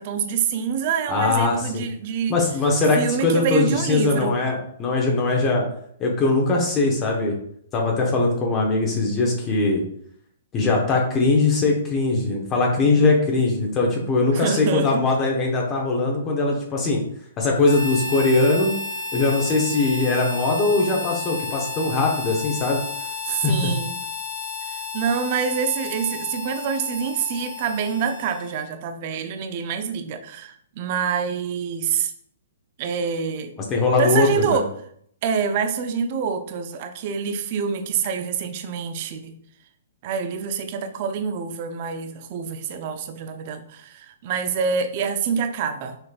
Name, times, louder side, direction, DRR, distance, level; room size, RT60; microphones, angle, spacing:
voice 1, 0.0-2.4 2.9-4.4 14.3-15.1 23.2-24.0 24.6-32.1 32.8-33.6 34.0-34.7 35.2-39.3 40.0-46.0, right 6 dB, 45° right, 7 dB, 0.6 m, -26 dB
voice 2, 1.1-1.8 2.3-5.7 6.0-7.3 7.7-9.8 10.5-17.0 17.4-18.7 19.1-22.8 23.3-23.7 33.7-34.6, left 3 dB, 25° left, 0 dB, 1.1 m, -21 dB
Harmonica, 17.6-28.7, left 3 dB, 55° left, 0.8 m, -32 dB
6.2 x 3.2 x 2.5 m, 0.66 s
hypercardioid pair, 125°, 0 cm